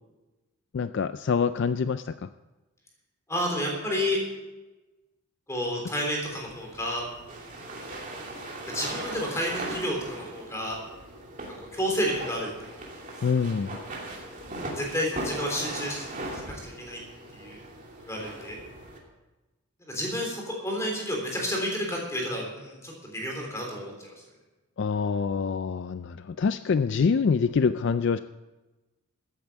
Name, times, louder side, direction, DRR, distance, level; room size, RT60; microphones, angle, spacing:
voice 1, 0.7-2.3 13.2-13.8 24.8-28.2, left 5 dB, 50° left, 12 dB, 0.3 m, -25 dB
voice 2, 3.3-4.2 5.5-7.1 8.7-10.8 11.7-12.7 14.8-16.1 16.3-17.0 17.3-17.6 18.0-18.6 19.9-24.1, equal, 15° left, 0 dB, 3.5 m, -30 dB
sound 1, 6.2-19.0, right 1 dB, 35° right, 2.5 m, -39 dB
14.0 x 8.9 x 7.4 m, 1.1 s
head